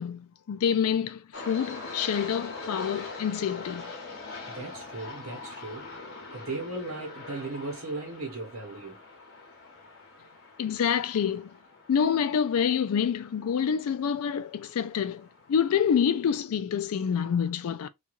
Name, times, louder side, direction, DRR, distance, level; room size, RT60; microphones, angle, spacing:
voice 1, 0.0-3.9 10.6-11.5 11.9-17.9, left 7 dB, 75° left, 0.3 m, -27 dB
sound 1, 1.3-16.3, left 3 dB, 60° left, 1.0 m, -43 dB
voice 2, 4.5-5.9 6.3-9.0, right 2 dB, 70° right, 0.9 m, -37 dB
3.0 x 2.3 x 2.3 m
head